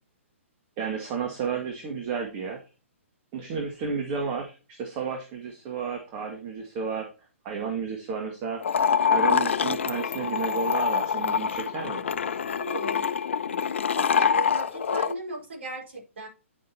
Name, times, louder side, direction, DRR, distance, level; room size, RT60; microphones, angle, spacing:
voice 1, 0.8-2.6 3.3-7.1 7.4-8.6 9.1-12.0, right 5 dB, 30° right, 1.8 m, -32 dB
sound 1, 8.6-15.1, left 7 dB, 60° left, 0.7 m, -25 dB
voice 2, 12.5-13.1 13.9-16.3, right 2 dB, 60° right, 4.8 m, -37 dB
10.0 x 7.4 x 2.9 m
figure-of-eight pair, 125°, 7 cm